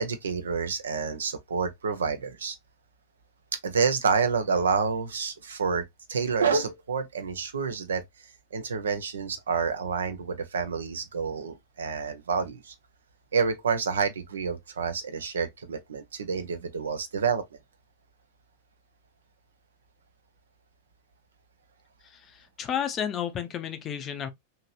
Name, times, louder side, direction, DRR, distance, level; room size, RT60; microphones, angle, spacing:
voice 1, 0.0-2.6 3.6-5.8 6.1-8.0 8.5-12.7 13.3-17.4, right 5 dB, 70° right, 0.5 m, -28 dB
voice 2, 22.6-24.3, left 9 dB, 30° left, 0.5 m, -31 dB
2.9 x 2.8 x 2.3 m
figure-of-eight pair, 90°, 0 cm